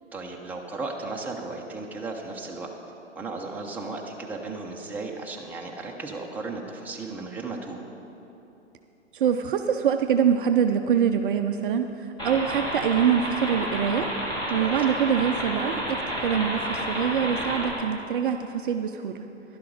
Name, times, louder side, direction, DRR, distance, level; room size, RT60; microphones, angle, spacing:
voice 1, 0.1-2.7 3.1-7.8 14.6-14.7, right 3 dB, 5° right, -1 dB, 0.8 m, -35 dB
voice 2, 9.1-14.1 14.5-16.0 16.2-19.3, right 8 dB, 45° right, 6 dB, 0.5 m, -24 dB
sound 1, 12.2-17.7, equal, 10° left, 2.1 m, -30 dB
11.5 x 11.5 x 4.9 m, 3.0 s
figure-of-eight pair, 120°, 37 cm